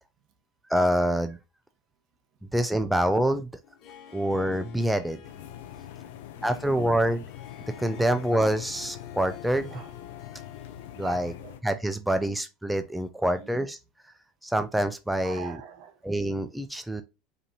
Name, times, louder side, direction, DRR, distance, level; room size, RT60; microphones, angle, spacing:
voice 1, 0.7-1.4 2.4-3.5 4.1-5.2 6.4-7.2 7.8-9.8 11.0-11.3 11.6-13.8 14.4-15.5 16.0-17.0, right 1 dB, 5° right, 0.4 m, -26 dB
Harp, 3.6-11.5, left 9 dB, 55° left, 1.3 m, -49 dB
sound 1, 5.2-11.6, left 11 dB, 80° left, 0.5 m, -44 dB
voice 2, 5.7-6.6 8.0-8.1 9.7-9.9 11.0-11.6 12.1-12.3 13.2-13.6 15.2-16.1, right 8 dB, 60° right, 1.0 m, -45 dB
5.1 x 2.7 x 2.8 m
supercardioid pair, 100°, 0 cm